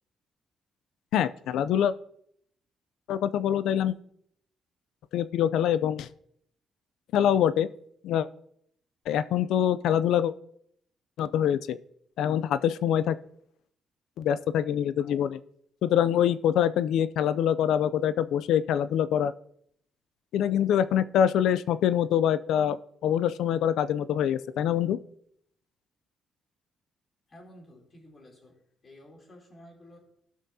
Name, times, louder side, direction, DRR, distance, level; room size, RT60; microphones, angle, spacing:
voice 1, 1.1-1.9 3.1-3.9 5.1-6.1 7.1-7.7 8.0-8.3 9.1-10.3 11.2-11.8 12.2-13.2 14.2-15.4 15.8-19.3 20.3-22.8 23.0-25.0, left 10 dB, 80° left, 15 dB, 0.4 m, -25 dB
voice 2, 27.3-28.5 28.8-30.0, left 1 dB, 35° left, 0 dB, 3.1 m, -52 dB
17.5 x 6.2 x 2.7 m, 0.70 s
cardioid pair, 90°, 0 cm